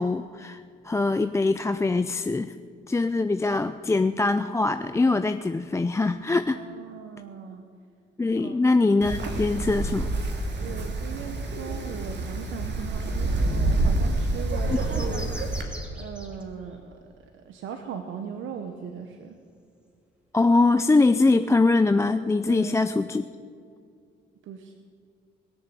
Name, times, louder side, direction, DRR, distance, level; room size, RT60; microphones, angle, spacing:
voice 1, 0.0-2.5 2.9-6.6 8.2-10.1 14.7-14.8 20.3-23.3, left 3 dB, 15° left, 10 dB, 0.4 m, -23 dB
voice 2, 6.5-7.6 8.4-8.6 9.3-9.4 10.6-15.5 15.9-16.9 17.3-19.4 22.5-22.8 24.5-24.7, right 7 dB, 80° right, 6 dB, 1.1 m, -38 dB
Wind, 9.0-15.6, right 2 dB, 60° right, 2.5 m, -27 dB
sound 1, 14.7-16.4 16.7-16.8, equal, 5° right, 2.5 m, -43 dB
21.0 x 7.1 x 8.4 m, 2.3 s
cardioid pair, 90°, 20 cm